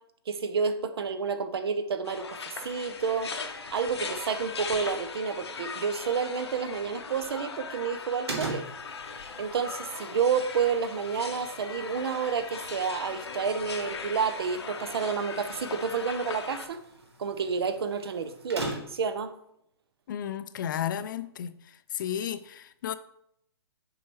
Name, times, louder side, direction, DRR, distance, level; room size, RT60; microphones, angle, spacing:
voice 1, 0.3-3.3 3.7-8.6 9.4-16.8 17.2-19.3, right 6 dB, 70° right, 0.7 m, -30 dB
sound 1, 2.1-16.7, left 5 dB, 85° left, 0.8 m, -39 dB
sound 2, 8.3-19.2, right 2 dB, 85° right, 1.7 m, -42 dB
voice 2, 20.1-21.6 21.9-22.9, left 10 dB, 50° left, 0.4 m, -33 dB
7.2 x 4.6 x 3.2 m
hypercardioid pair, 140°, 14 cm